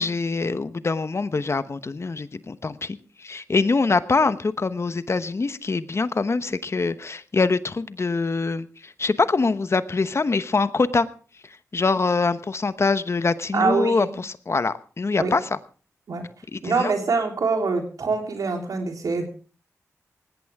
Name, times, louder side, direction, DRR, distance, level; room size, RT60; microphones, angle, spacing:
voice 1, 0.0-11.1 11.7-15.4 16.5-16.9, left 4 dB, 50° left, 13 dB, 1.0 m, -24 dB
voice 2, 13.5-14.2 15.2-15.3 16.1-16.3 16.6-19.3, right 4 dB, 80° right, 3 dB, 3.5 m, -24 dB
18.5 x 16.0 x 3.6 m, 0.38 s
cardioid pair, 55°, 6 cm